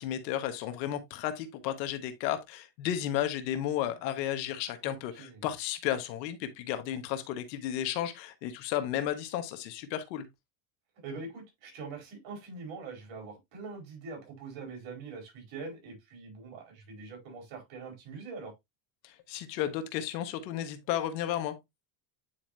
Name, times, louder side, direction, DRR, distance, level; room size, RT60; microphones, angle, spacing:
voice 1, 0.0-10.2 19.0-21.5, left 11 dB, 85° left, 1.5 m, -33 dB
voice 2, 4.8-5.4 11.0-18.5, right 4 dB, 65° right, 4.7 m, -43 dB
9.6 x 4.5 x 2.6 m
supercardioid pair, 100°, 49 cm